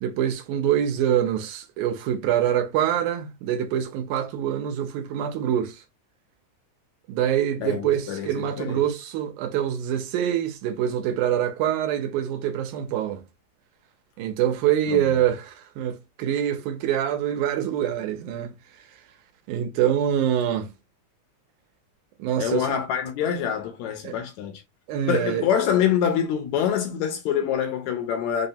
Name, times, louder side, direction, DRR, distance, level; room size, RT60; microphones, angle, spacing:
voice 1, 0.0-5.8 7.1-13.2 14.2-18.9 19.5-20.7 22.2-22.8 24.0-24.2 24.9-25.4, right 10 dB, 80° right, 2.1 m, -25 dB
voice 2, 7.6-8.8 14.9-15.1 22.4-24.6 25.1-28.5, left 8 dB, 75° left, 1.8 m, -25 dB
5.2 x 2.1 x 2.7 m
omnidirectional pair, 3.5 m